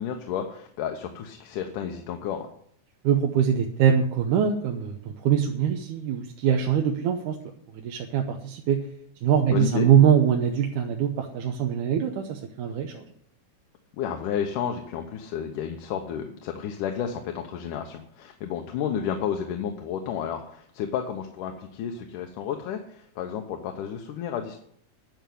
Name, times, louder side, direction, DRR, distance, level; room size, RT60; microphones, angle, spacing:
voice 1, 0.0-2.5 9.4-9.9 14.0-24.6, left 8 dB, 85° left, 4 dB, 2.6 m, -31 dB
voice 2, 3.0-7.4 7.7-8.8 9.2-13.0, right 8 dB, 85° right, 3 dB, 2.4 m, -23 dB
11.0 x 6.9 x 9.2 m, 0.66 s
omnidirectional pair, 3.6 m